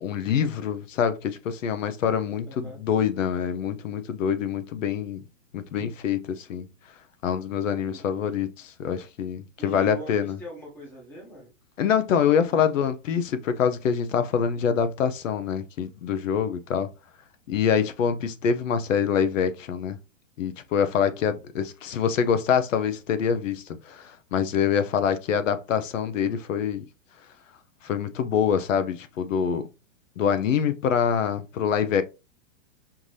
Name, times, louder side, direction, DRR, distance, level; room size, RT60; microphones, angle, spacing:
voice 1, 0.0-5.2 5.5-6.7 7.2-10.4 11.8-16.9 17.5-20.0 20.4-26.8 27.8-29.7 30.2-32.0, left 7 dB, 75° left, 0.8 m, -25 dB
voice 2, 2.4-2.8 5.7-5.9 7.8-8.1 9.6-11.5 12.2-12.6, right 2 dB, 5° left, 0.7 m, -42 dB
5.7 x 2.7 x 3.2 m
supercardioid pair, 175°, 39 cm